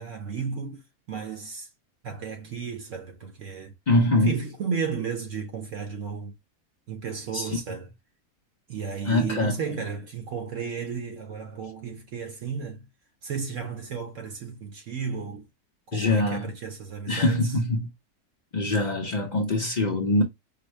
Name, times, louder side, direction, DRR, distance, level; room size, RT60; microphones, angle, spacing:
voice 1, 0.0-1.7 2.0-3.7 4.2-6.3 6.9-7.9 8.7-12.9 13.2-15.5 15.9-17.6, right 6 dB, 60° right, 0.9 m, -34 dB
voice 2, 3.9-4.4 7.3-7.5 9.1-9.5 15.9-16.5 17.1-17.9 18.5-20.2, left 1 dB, 70° left, 0.4 m, -23 dB
4.8 x 2.1 x 3.1 m
omnidirectional pair, 1.7 m